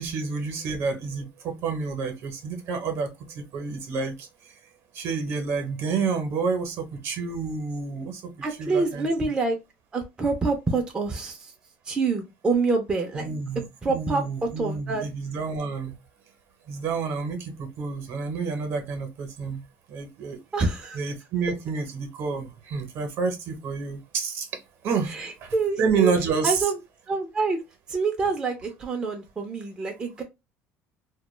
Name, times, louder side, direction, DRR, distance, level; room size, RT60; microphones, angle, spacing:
voice 1, 0.0-4.5 4.9-8.3 8.6-9.3 13.1-16.0 16.7-19.6 19.9-20.4 20.9-26.6, right 5 dB, 55° right, 0.7 m, -29 dB
voice 2, 8.4-9.6 9.9-11.5 11.9-13.3 13.8-14.2 14.6-15.0 20.5-21.0 25.1-26.1 26.4-26.8 27.1-27.6 27.9-30.2, right 4 dB, 15° right, 0.4 m, -26 dB
2.2 x 2.1 x 3.0 m
cardioid pair, 155°, 5 cm